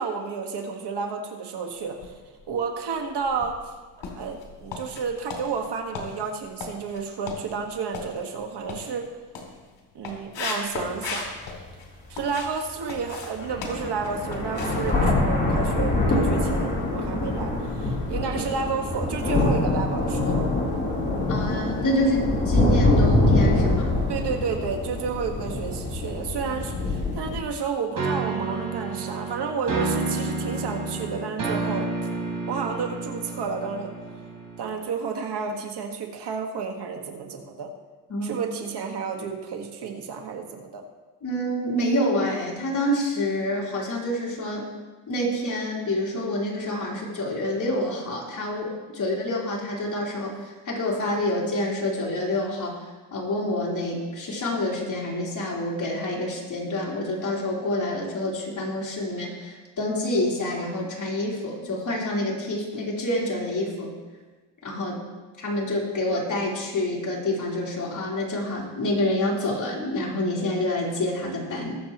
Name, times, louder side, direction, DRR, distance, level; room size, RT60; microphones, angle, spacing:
voice 1, 0.0-2.1 2.5-3.7 4.1-9.1 9.9-11.4 12.1-20.5 24.1-31.9 32.5-33.9 34.6-37.7 38.2-40.8, right 5 dB, 65° right, 3 dB, 1.7 m, -31 dB
sound 1, 1.9-2.6 3.1-12.6 12.8-16.0 16.3-16.5 16.9-17.0, left 4 dB, 75° left, 2.7 m, -37 dB
sound 2, 10.9-11.0 11.6-11.7 13.0-13.1 13.4-27.4, left 2 dB, 25° left, 3.4 m, -24 dB
voice 2, 21.3-24.0 38.1-38.4 41.2-44.7 45.1-50.4 50.7-52.7 53.1-63.9 64.6-65.0 65.4-71.8, left 1 dB, 45° left, -4 dB, 3.6 m, -27 dB
sound 3, 28.0-34.8, right 3 dB, 45° right, 3.3 m, -30 dB
21.0 x 7.4 x 3.0 m, 1.3 s
cardioid pair, 100°, 43 cm